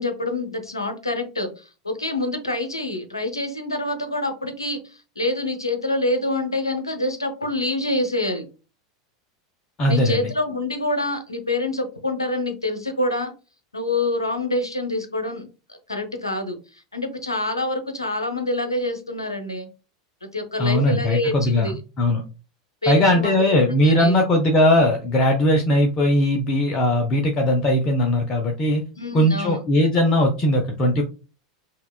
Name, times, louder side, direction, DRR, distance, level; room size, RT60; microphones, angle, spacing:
voice 1, 0.0-8.4 9.8-13.3 13.7-19.7 20.2-21.8 22.8-23.4 23.8-24.1 29.0-29.6, left 2 dB, 85° left, 7 dB, 0.6 m, -26 dB
voice 2, 9.8-10.3 20.6-22.2 22.9-28.8 29.1-31.0, left 1 dB, 30° left, 2 dB, 0.6 m, -19 dB
5.5 x 2.3 x 2.3 m, 0.33 s
figure-of-eight pair, 85°, 2 cm